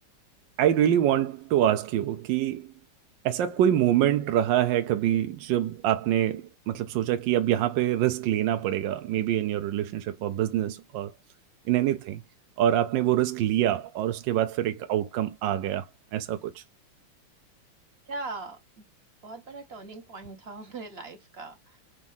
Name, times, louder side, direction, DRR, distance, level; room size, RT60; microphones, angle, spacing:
voice 1, 0.6-2.7 3.2-11.1 11.7-12.2 12.6-15.9 16.1-16.6, right 11 dB, 70° right, 1.1 m, -25 dB
voice 2, 18.1-18.8 19.2-21.8, right 3 dB, 35° right, 1.1 m, -40 dB
4.6 x 4.2 x 5.5 m
omnidirectional pair, 2.4 m